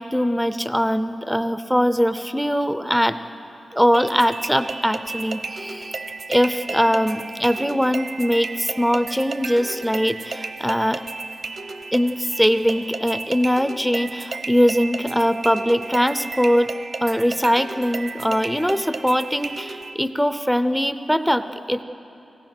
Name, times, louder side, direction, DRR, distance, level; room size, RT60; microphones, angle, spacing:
voice 1, 0.0-3.2 3.7-6.0 6.3-11.0 11.9-16.7 17.0-21.8, equal, ahead, 11 dB, 0.5 m, -21 dB
sound 1, 3.9-19.9, right 3 dB, 55° right, 0.8 m, -33 dB
24.5 x 18.0 x 6.0 m, 2.9 s
wide cardioid pair, 150°, 0 cm